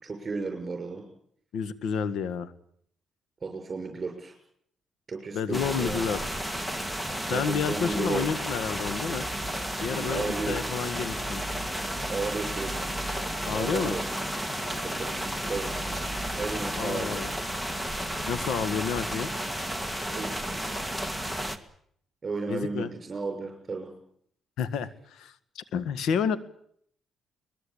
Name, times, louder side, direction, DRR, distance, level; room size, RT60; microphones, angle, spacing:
voice 1, 0.0-1.0 3.4-4.3 5.1-6.0 7.3-8.4 9.9-10.6 12.0-12.7 13.5-14.0 14.8-15.7 16.3-17.2 20.1-20.8 22.2-23.9, right 4 dB, 35° right, 3 dB, 6.3 m, -34 dB
voice 2, 1.5-2.5 5.3-6.2 7.3-9.3 9.8-11.4 13.4-13.9 16.8-17.3 18.3-19.3 22.5-22.9 24.6-26.4, left 7 dB, 80° left, 13 dB, 1.7 m, -30 dB
sound 1, 5.5-21.6, equal, 5° left, 2.1 m, -32 dB
23.5 x 20.5 x 8.7 m, 0.67 s
cardioid pair, 90°, 0 cm